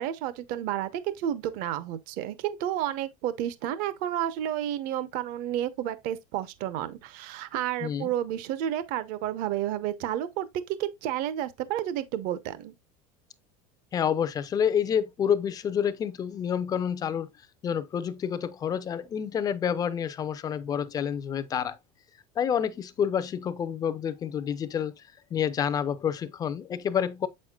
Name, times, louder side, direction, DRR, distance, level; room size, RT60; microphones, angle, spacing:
voice 1, 0.0-12.7, right 11 dB, 45° right, 0.8 m, -31 dB
voice 2, 7.8-8.1 13.9-17.3 17.6-21.8 22.4-25.0 25.3-27.3, left 8 dB, 20° left, 0.5 m, -28 dB
8.0 x 6.4 x 2.3 m
cardioid pair, 170°, 20 cm